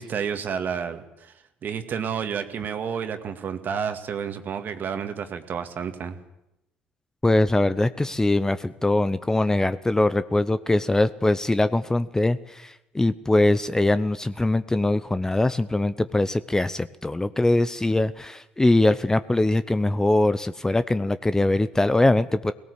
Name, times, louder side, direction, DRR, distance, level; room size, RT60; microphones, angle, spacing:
voice 1, 0.0-1.3 1.6-6.2, right 7 dB, 45° right, 8 dB, 2.1 m, -30 dB
voice 2, 7.2-22.5, left 2 dB, 15° left, 14 dB, 0.8 m, -22 dB
18.5 x 17.5 x 8.3 m, 0.87 s
hypercardioid pair, 55°, 4 cm